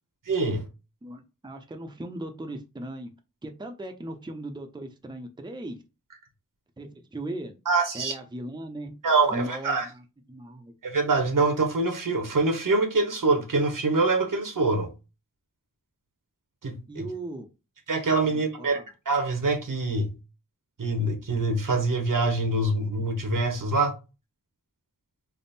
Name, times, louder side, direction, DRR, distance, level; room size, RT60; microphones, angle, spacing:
voice 1, 0.3-0.6 7.7-8.1 9.0-9.9 10.8-14.9 16.6-17.1 17.9-18.8 19.1-20.1 20.8-23.9, right 3 dB, 70° right, 0.8 m, -25 dB
voice 2, 1.0-3.1 3.4-5.8 6.8-7.6 7.9-8.9 9.3-10.0 10.3-10.7 16.9-17.5 18.3-18.8, right 1 dB, 15° right, 0.5 m, -37 dB
3.5 x 2.0 x 4.0 m
wide cardioid pair, 50°, 34 cm